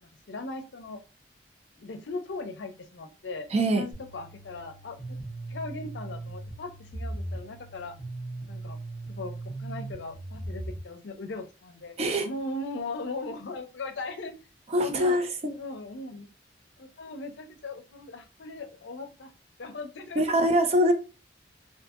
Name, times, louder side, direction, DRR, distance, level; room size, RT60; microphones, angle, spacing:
voice 1, 0.3-1.0 1.8-5.0 5.5-7.9 8.5-8.8 9.1-9.3 9.6-12.0 12.2-14.3 14.8-15.2 15.6-16.3 16.8-19.3 19.6-20.2, left 2 dB, 75° left, 8 dB, 0.5 m, -38 dB
voice 2, 3.5-3.8 12.0-12.3 14.7-15.6 20.2-20.9, equal, 35° right, 7 dB, 0.4 m, -23 dB
sound 1, 3.9-10.8, right 2 dB, 70° right, 1.1 m, -39 dB
2.7 x 2.5 x 2.4 m, 0.32 s
head